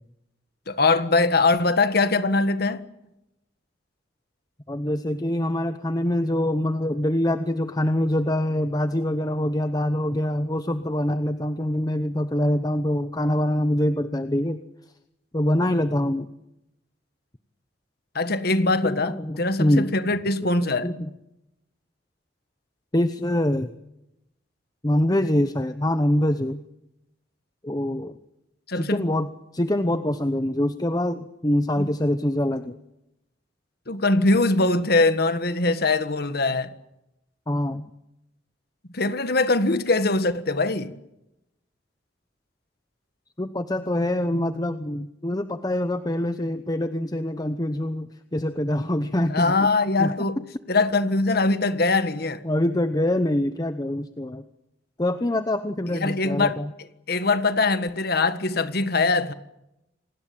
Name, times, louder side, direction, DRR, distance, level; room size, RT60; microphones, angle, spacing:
voice 1, 0.7-2.8 18.2-20.9 28.7-29.1 31.8-31.9 33.9-36.7 38.9-41.0 49.2-50.4 50.7-52.4 55.9-59.3, left 3 dB, 55° left, 1.6 m, -22 dB
voice 2, 4.7-14.6 15.3-16.3 18.8-19.9 20.4-20.5 20.8-21.1 22.9-23.7 24.8-26.6 27.6-28.2 28.7-29.3 29.5-32.8 37.5-37.9 43.4-49.5 50.0-50.3 52.4-54.4 55.0-56.7, left 1 dB, 20° left, 0.9 m, -24 dB
27.5 x 19.5 x 8.8 m
head